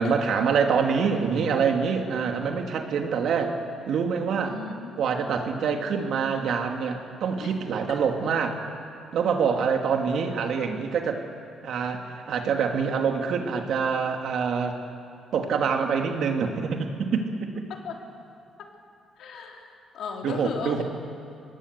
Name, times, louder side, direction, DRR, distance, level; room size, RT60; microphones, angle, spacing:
voice 1, 0.0-3.6 3.9-4.6 5.0-8.5 9.1-11.2 11.6-14.8 15.3-17.7 20.2-20.8, right 6 dB, 70° right, 3 dB, 2.7 m, -25 dB
voice 2, 4.4-5.2 7.4-7.5 17.7-18.0 18.6-18.7 19.2-20.8, left 5 dB, 75° left, 1 dB, 3.7 m, -37 dB
24.5 x 20.0 x 8.3 m, 2.5 s
cardioid pair, 90°, 0 cm